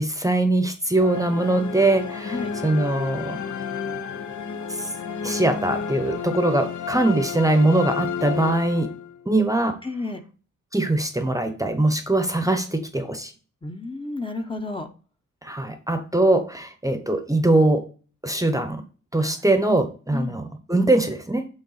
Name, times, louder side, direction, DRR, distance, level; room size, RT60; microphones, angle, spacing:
voice 1, 0.0-3.4 4.8-4.9 5.2-8.9 9.3-9.8 10.7-13.3 15.4-17.9 18.2-18.8 19.1-21.5, right 2 dB, 10° right, 7 dB, 0.9 m, -22 dB
sound 1, 1.0-9.3, left 6 dB, 70° left, 0.9 m, -31 dB
voice 2, 9.8-10.2 13.6-14.9 19.2-19.4 20.1-20.4, left 3 dB, 15° left, 4 dB, 0.9 m, -31 dB
8.2 x 3.7 x 4.0 m, 0.36 s
wide cardioid pair, 110°, 30 cm